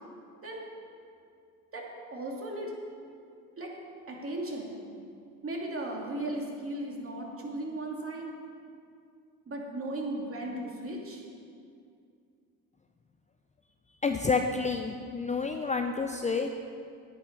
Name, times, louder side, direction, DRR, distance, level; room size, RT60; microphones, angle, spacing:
voice 1, 2.1-2.7 3.6-3.7 4.1-4.8 5.4-8.3 9.5-11.2, right 1 dB, 30° right, -1 dB, 2.7 m, -36 dB
voice 2, 14.0-16.5, left 4 dB, 15° left, 5 dB, 0.6 m, -29 dB
9.9 x 9.2 x 5.4 m, 2.4 s
hypercardioid pair, 65°, 41 cm